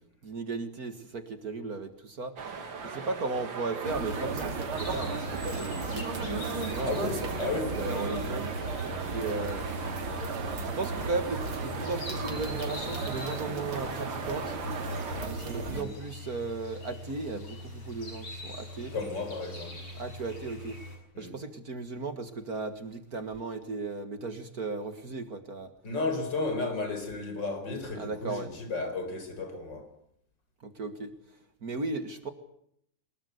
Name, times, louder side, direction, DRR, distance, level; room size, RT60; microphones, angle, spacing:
voice 1, 0.2-2.4 2.8-7.1 7.7-8.5 9.1-9.7 10.8-14.5 15.2-18.9 19.9-20.8 21.2-25.7 27.9-28.5 30.6-31.1 31.6-32.3, right 3 dB, 45° right, 2.1 m, -36 dB
sound 1, 2.4-15.3, right 5 dB, 65° right, 2.9 m, -40 dB
sound 2, 3.8-15.8, right 4 dB, 80° right, 3.5 m, -35 dB
sound 3, 4.8-21.0, left 1 dB, 70° left, 6.9 m, -43 dB
voice 2, 6.8-7.8 15.7-15.9 18.9-19.8 21.2-21.3 25.8-29.9, left 3 dB, 55° left, 5.1 m, -33 dB
24.0 x 21.5 x 8.0 m
omnidirectional pair, 2.3 m